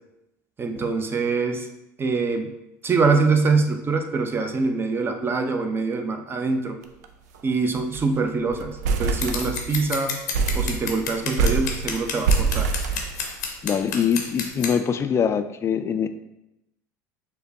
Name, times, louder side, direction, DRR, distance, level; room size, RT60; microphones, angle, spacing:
voice 1, 0.6-1.7 2.0-2.5 2.8-6.8 7.4-10.2 10.5-12.7, right 4 dB, 25° right, 6 dB, 0.6 m, -24 dB
sound 1, 6.8-7.1 7.3-7.4 7.8-8.1 8.5-9.9 10.3-13.6, right 4 dB, 75° right, 0.4 m, -25 dB
Scissors, 9.2-14.7, left 5 dB, 80° left, 0.7 m, -30 dB
voice 2, 13.6-16.1, left 7 dB, 30° left, 10 dB, 0.3 m, -23 dB
6.4 x 2.2 x 2.7 m, 0.88 s
hypercardioid pair, 80°, 9 cm